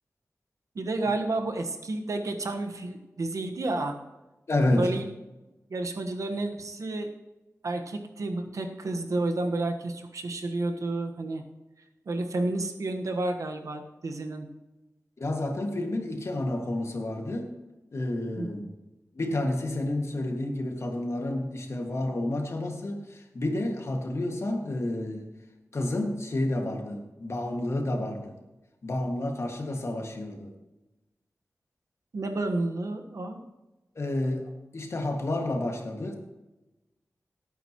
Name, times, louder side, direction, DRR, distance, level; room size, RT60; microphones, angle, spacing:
voice 1, 0.7-3.9 4.7-5.0 5.7-7.1 7.6-11.4 12.0-14.5 18.4-18.7 32.1-33.4, right 2 dB, 85° right, 4 dB, 1.3 m, -31 dB
voice 2, 4.5-4.9 15.2-17.5 17.9-18.7 19.1-25.3 25.7-28.3 28.8-30.5 34.0-36.1, left 1 dB, 60° left, 3 dB, 2.0 m, -30 dB
18.0 x 9.1 x 3.1 m, 1.1 s
wide cardioid pair, 90°, 5 cm